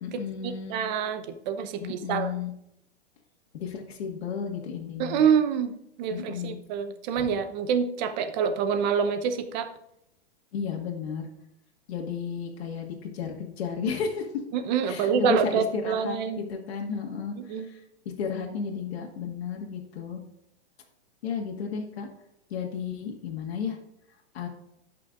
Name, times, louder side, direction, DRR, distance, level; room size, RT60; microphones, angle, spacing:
voice 1, 0.0-0.8 1.8-2.5 3.5-5.2 6.1-6.6 10.5-11.3 11.9-14.3 14.9-17.8 18.2-20.2 21.2-22.1 22.5-23.8 24.3-24.5, left 6 dB, 65° left, 1 dB, 1.9 m, -33 dB
voice 2, 0.7-2.3 5.0-5.7 6.0-9.7 14.5-16.4 17.4-17.7, right 7 dB, 40° right, 9 dB, 0.9 m, -26 dB
17.0 x 5.8 x 2.5 m, 0.82 s
hypercardioid pair, 140°, 33 cm